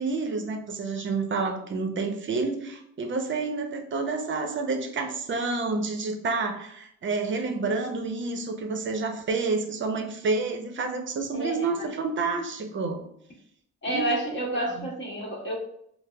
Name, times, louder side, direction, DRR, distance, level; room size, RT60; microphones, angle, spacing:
voice 1, 0.0-13.0 13.9-14.9, right 3 dB, 40° right, 5 dB, 0.6 m, -29 dB
voice 2, 11.3-11.9 13.8-15.5, right 1 dB, 40° left, -2 dB, 1.2 m, -30 dB
5.0 x 2.0 x 2.2 m, 0.73 s
cardioid pair, 90°, 30 cm